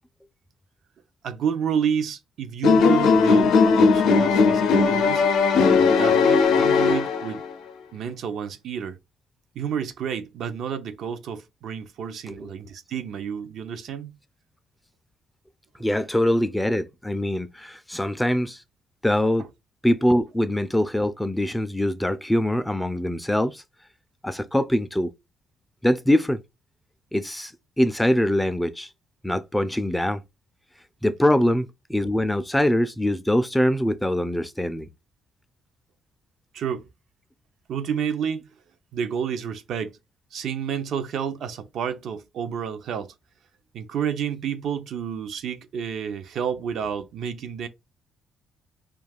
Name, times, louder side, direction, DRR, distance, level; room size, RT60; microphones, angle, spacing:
voice 1, 1.2-5.3 5.5-7.4 7.9-9.0 9.5-14.1 36.5-36.9 37.7-38.5 38.9-40.0 40.3-43.1 43.7-47.7, right 8 dB, 70° right, 0.5 m, -30 dB
sound 1, 2.6-7.5, left 5 dB, 85° left, 0.5 m, -18 dB
voice 2, 15.8-18.6 19.0-19.5 19.8-23.6 24.2-25.1 25.8-26.4 27.1-27.5 27.8-28.9 29.2-30.2 31.0-34.9, left 1 dB, 5° left, 0.3 m, -23 dB
2.3 x 2.3 x 3.4 m
cardioid pair, 90°, 0 cm